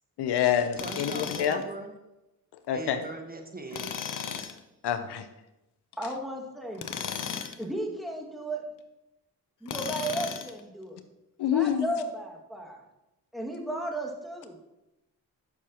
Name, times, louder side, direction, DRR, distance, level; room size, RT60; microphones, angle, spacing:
voice 1, 0.2-1.6 2.7-3.0 4.8-5.3 11.4-11.9, left 9 dB, 80° left, 10 dB, 0.8 m, -27 dB
Tools, 0.8-1.6 3.7-4.6 6.7-7.6 9.7-10.6, left 7 dB, 50° left, 0.9 m, -35 dB
voice 2, 0.8-1.9 2.7-3.9, right 2 dB, 20° right, 4 dB, 1.4 m, -39 dB
voice 3, 6.0-6.8 7.6-8.6 9.6-11.0 11.5-12.8 13.3-14.7, right 1 dB, ahead, 0 dB, 2.1 m, -34 dB
11.0 x 6.4 x 3.0 m, 0.95 s
cardioid pair, 55°, 40 cm